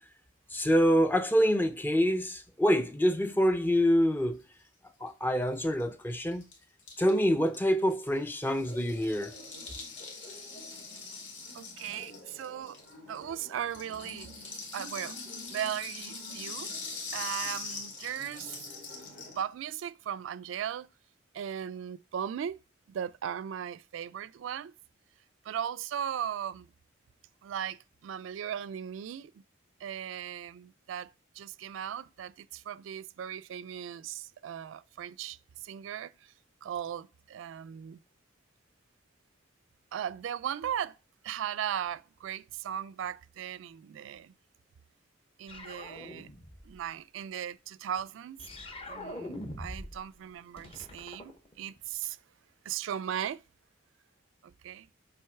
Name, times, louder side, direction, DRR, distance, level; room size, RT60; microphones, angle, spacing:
voice 1, 0.5-4.4 5.0-6.4 7.0-9.3, equal, 10° left, 0.4 m, -26 dB
Rattle (instrument), 5.5-5.6 5.8-5.9 6.1-13.2 13.5-19.4, left 4 dB, 75° left, 2.3 m, -42 dB
Laughter, 8.5-19.4, equal, 45° left, 2.4 m, -52 dB
voice 2, 11.5-12.8 13.1-14.3 14.7-15.1 15.5-16.7 17.1-18.5 19.4-20.9 21.3-22.6 22.9-24.7 25.4-26.7 27.4-29.4 29.8-31.1 31.3-36.3 36.6-38.0 39.9-41.0 41.2-44.3 45.4-46.3 46.6-48.4 48.9-52.2 52.6-53.4 54.4-54.9, right 9 dB, 80° right, 0.3 m, -37 dB
sound 1, 45.5-46.8 48.4-50.1 50.3-51.9, left 1 dB, 30° left, 0.9 m, -43 dB
7.7 x 3.8 x 4.5 m
head